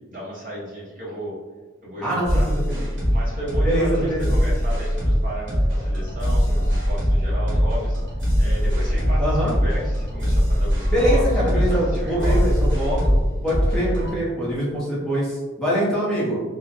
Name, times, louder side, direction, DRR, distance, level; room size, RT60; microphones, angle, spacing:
voice 1, 0.1-1.4 1.8-2.5 3.1-8.0 8.4-12.6, equal, 40° right, -6 dB, 0.8 m, -34 dB
sound 1, 2.2-14.1, equal, 70° right, 1.1 m, -21 dB
voice 2, 3.6-4.3 9.2-9.5 10.9-13.2 13.4-16.4, equal, 5° left, -8 dB, 0.6 m, -24 dB
2.6 x 2.1 x 2.5 m, 1.3 s
head